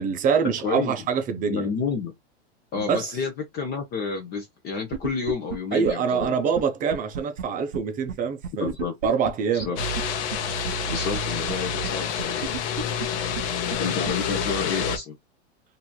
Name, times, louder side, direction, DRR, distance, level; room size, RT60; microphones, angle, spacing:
voice 1, 0.0-1.7 2.7-3.2 5.7-8.7 9.0-9.8, right 6 dB, 25° right, 0.5 m, -25 dB
voice 2, 0.6-0.9 1.5-2.1 2.7-6.4 8.6-8.9 9.5-9.8 10.9-12.5 13.8-15.2, left 5 dB, 30° left, 0.6 m, -30 dB
sound 1, 4.9-5.6 5.8-5.9 6.2-6.3 6.6-6.7 6.9-7.4 7.7-7.8 8.1-8.2 8.4-9.3 9.6-9.7 9.9-10.0 10.3-10.4 10.7-11.2 11.5-11.6 11.8-11.9 12.2-13.1 13.3-13.4 13.7-13.8 14.1-14.2, right 7 dB, 75° right, 0.6 m, -32 dB
sound 2, 9.8-15.0, left 6 dB, 70° left, 0.8 m, -28 dB
2.9 x 2.6 x 2.2 m
supercardioid pair, 125°, 36 cm